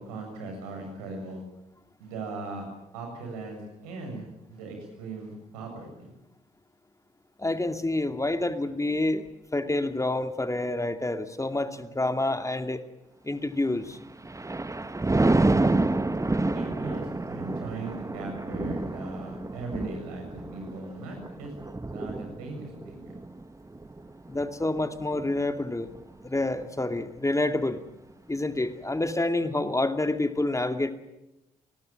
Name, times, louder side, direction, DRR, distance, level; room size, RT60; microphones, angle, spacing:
voice 1, 0.0-1.4 2.0-2.6 2.9-4.2 4.5-6.1 16.5-21.5 21.9-23.0, right 3 dB, 80° right, 3 dB, 7.5 m, -39 dB
voice 2, 7.4-9.3 9.5-12.8 13.2-14.0 24.3-25.9 26.2-27.8 28.3-30.9, left 2 dB, 15° left, 8 dB, 2.3 m, -28 dB
Thunder, 13.9-25.4 25.9-26.2, right 2 dB, 15° right, 1.4 m, -29 dB
29.0 x 20.5 x 7.5 m, 0.92 s
figure-of-eight pair, 40°, 19 cm